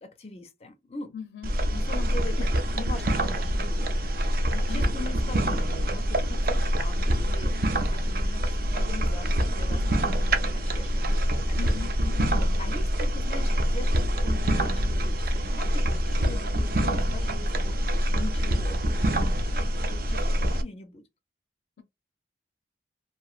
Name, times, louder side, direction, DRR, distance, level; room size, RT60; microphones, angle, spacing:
voice 1, 0.0-1.1 1.7-4.2 4.7-11.8 12.3-17.8 18.2-19.4 19.9-21.0, left 2 dB, 35° left, 0.4 m, -42 dB
voice 2, 1.1-1.5 2.1-2.5 4.5-4.8 11.6-12.3, left 7 dB, 85° left, 0.5 m, -40 dB
sound 1, 1.4-20.6, equal, 50° right, 0.5 m, -25 dB
3.0 x 2.6 x 2.4 m
head